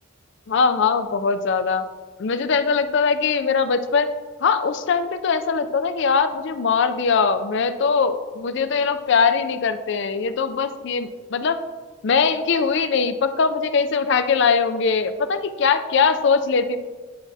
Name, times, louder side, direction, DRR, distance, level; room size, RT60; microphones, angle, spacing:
voice 1, 0.5-1.8 2.2-4.1 4.4-11.6 12.0-16.8, left 5 dB, 55° left, 10 dB, 0.4 m, -21 dB
10.0 x 5.9 x 2.7 m, 1.4 s
head